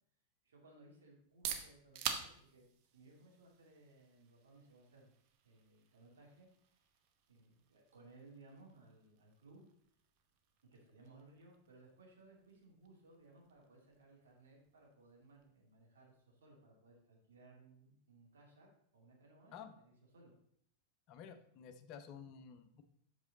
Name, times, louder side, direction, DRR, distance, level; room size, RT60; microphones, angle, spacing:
voice 1, 0.4-2.7 2.9-5.1 5.4-6.9 7.3-9.6 10.6-18.7 18.9-20.3, right 2 dB, 65° right, -2 dB, 2.5 m, -62 dB
sound 1, 1.2-16.8, right 8 dB, 40° right, 0.9 m, -51 dB
voice 2, 21.1-22.8, left 7 dB, 40° left, 9 dB, 0.7 m, -52 dB
8.1 x 6.1 x 3.9 m, 0.68 s
figure-of-eight pair, 90°, 0 cm